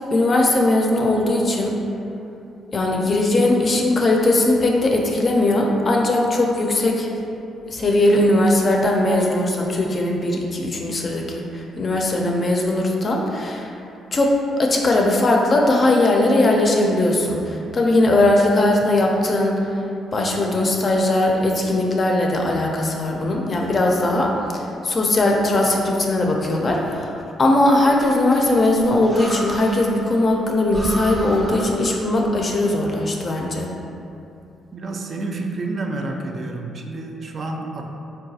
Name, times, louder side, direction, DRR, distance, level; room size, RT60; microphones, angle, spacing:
voice 1, 0.1-1.7 2.7-7.1 7.7-13.7 14.1-19.7 20.1-33.7, left 1 dB, 40° left, 0 dB, 0.4 m, -19 dB
Breathing, 27.8-30.0 30.3-30.4 30.7-32.4, right 1 dB, 10° right, 0.6 m, -33 dB
voice 2, 34.7-37.9, right 2 dB, 50° right, 2 dB, 0.3 m, -29 dB
3.8 x 2.2 x 2.7 m, 2.7 s
cardioid pair, 90°, 0 cm